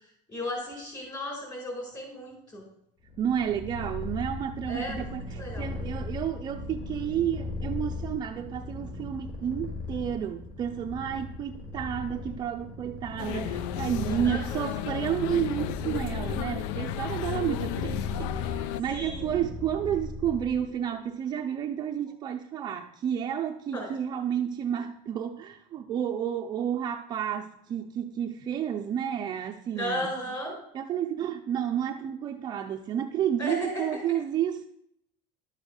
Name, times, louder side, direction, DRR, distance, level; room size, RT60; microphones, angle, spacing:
voice 1, 0.3-2.6 4.7-5.7 14.2-14.6 18.9-19.3 23.7-23.9 29.8-30.5 33.4-33.9, equal, 25° left, 4.7 m, -35 dB
Purr, 3.0-20.8, left 2 dB, 40° left, 3.7 m, -38 dB
voice 2, 3.2-30.1 30.7-34.7, right 9 dB, 25° right, 0.5 m, -31 dB
sound 1, 13.2-18.8, left 13 dB, 75° left, 0.5 m, -34 dB
12.0 x 7.1 x 6.4 m
cardioid pair, 175°, 17 cm